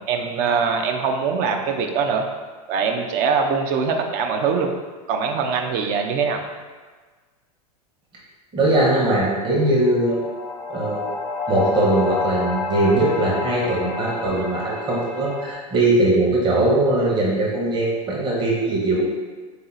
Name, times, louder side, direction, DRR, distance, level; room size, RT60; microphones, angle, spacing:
voice 1, 0.0-2.3 2.7-4.7 5.1-6.4, right 5 dB, 45° right, 4 dB, 0.6 m, -22 dB
voice 2, 8.5-10.2 10.7-11.1 11.5-19.0, right 1 dB, 25° right, -4 dB, 1.0 m, -20 dB
sound 1, 9.5-15.5, left 4 dB, 25° left, 0.5 m, -30 dB
4.0 x 2.8 x 3.9 m, 1.4 s
hypercardioid pair, 110°, 20 cm